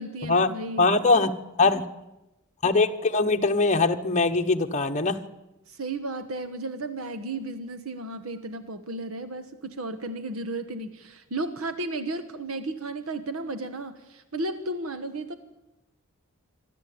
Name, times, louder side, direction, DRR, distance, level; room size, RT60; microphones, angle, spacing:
voice 1, 0.0-1.0 5.7-15.4, right 2 dB, 70° right, 10 dB, 1.2 m, -34 dB
voice 2, 0.8-1.3 1.6-1.8 2.6-5.2, left 3 dB, 35° left, 5 dB, 1.1 m, -22 dB
26.0 x 12.0 x 8.6 m, 0.98 s
head